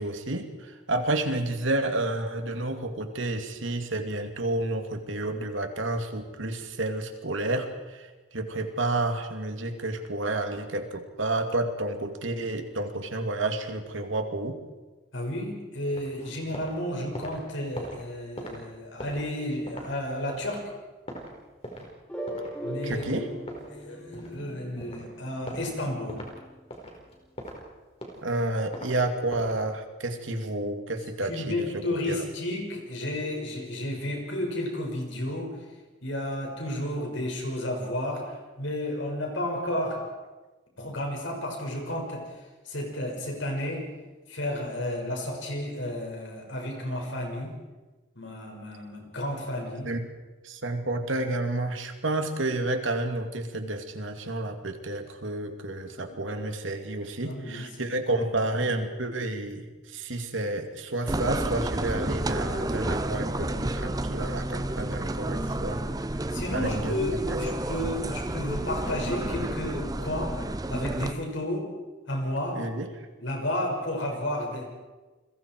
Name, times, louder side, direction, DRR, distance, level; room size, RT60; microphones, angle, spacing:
voice 1, 0.0-14.6 22.8-23.3 28.2-32.2 49.8-50.1 50.4-65.8 66.5-67.0 67.3-67.4 72.5-72.9, right 2 dB, 80° right, 5 dB, 2.6 m, -30 dB
voice 2, 15.1-20.6 22.6-23.2 23.7-26.2 31.3-35.6 36.0-40.0 40.8-42.2 42.6-43.9 44.3-47.5 48.2-49.9 56.0-56.2 57.2-57.7 58.2-58.3 65.5-65.9 66.3-70.4 70.7-71.7 72.1-72.6 73.2-74.7, left 1 dB, 75° left, 1 dB, 6.0 m, -32 dB
sound 1, 15.9-16.8 17.0-22.0 22.3-22.5 22.9-24.5 24.8-25.1 25.5-25.7 26.1-26.3 26.7-27.6 27.9-28.9 29.3-29.6, equal, 30° left, 4.6 m, -41 dB
sound 2, 22.1-26.7, equal, 5° left, 4.5 m, -39 dB
sound 3, 61.1-71.1, right 1 dB, 20° right, 0.7 m, -30 dB
29.5 x 22.0 x 4.7 m, 1.2 s
head